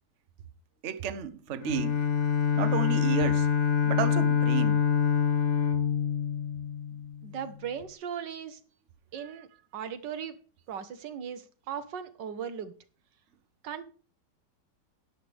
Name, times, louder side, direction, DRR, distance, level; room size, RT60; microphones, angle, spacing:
voice 1, 0.8-2.0 2.6-3.5 3.8-4.8 9.2-9.3, right 9 dB, 50° right, 1.0 m, -32 dB
Bowed string instrument, 1.6-7.2, left 7 dB, 45° left, 1.2 m, -26 dB
voice 2, 7.2-8.6 9.1-10.4 10.7-12.7 13.6-13.8, right 8 dB, 85° right, 1.8 m, -38 dB
13.5 x 10.5 x 3.4 m
omnidirectional pair, 1.9 m